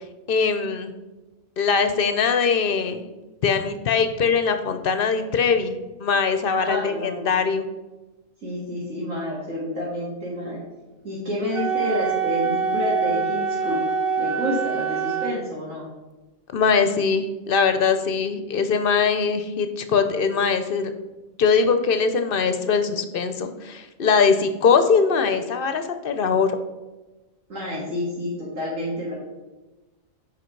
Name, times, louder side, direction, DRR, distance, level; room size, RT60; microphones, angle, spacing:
voice 1, 0.3-0.9 1.6-3.0 3.4-7.7 16.5-20.9 21.4-26.6, left 5 dB, 55° left, 8 dB, 0.6 m, -21 dB
voice 2, 6.6-7.3 8.4-10.6 11.0-13.8 14.2-15.9 27.5-29.1, left 1 dB, 80° right, -7 dB, 2.4 m, -29 dB
Wind instrument woodwind instrument, 11.5-15.4, right 5 dB, 50° right, 0.9 m, -25 dB
7.9 x 5.1 x 4.5 m, 1.1 s
omnidirectional pair, 1.4 m